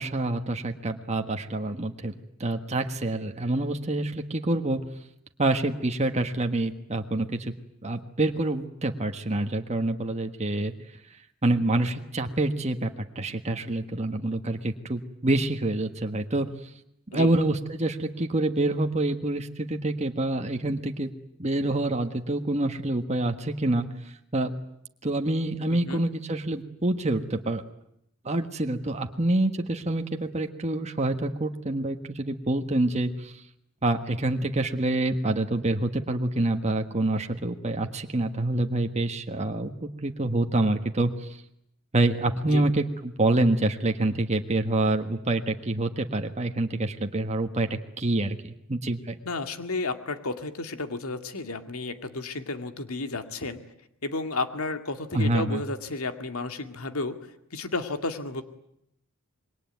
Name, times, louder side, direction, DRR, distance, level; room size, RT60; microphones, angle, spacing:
voice 1, 0.0-2.1 2.4-4.8 5.4-7.5 7.8-10.7 11.4-16.5 17.1-21.1 21.4-23.9 24.3-24.5 25.0-27.6 28.2-33.3 33.8-41.1 41.9-49.2 55.1-55.6, right 2 dB, 30° right, 5 dB, 1.5 m, -27 dB
voice 2, 25.7-26.1 42.5-42.6 49.2-53.6 54.0-58.4, left 3 dB, 85° left, 8 dB, 2.1 m, -32 dB
26.5 x 22.0 x 9.4 m, 0.77 s
head